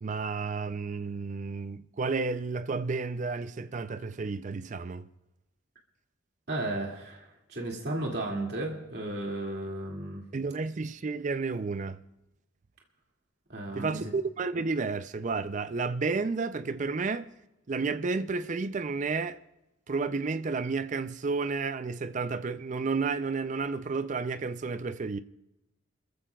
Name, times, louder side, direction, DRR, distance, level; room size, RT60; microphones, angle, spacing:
voice 1, 0.0-5.1 10.3-12.0 13.7-17.3 17.7-19.4 19.9-25.2, right 4 dB, 40° right, 0.4 m, -31 dB
voice 2, 6.5-10.2 13.5-14.0, right 2 dB, 55° right, 2.4 m, -34 dB
30.0 x 14.5 x 2.4 m
head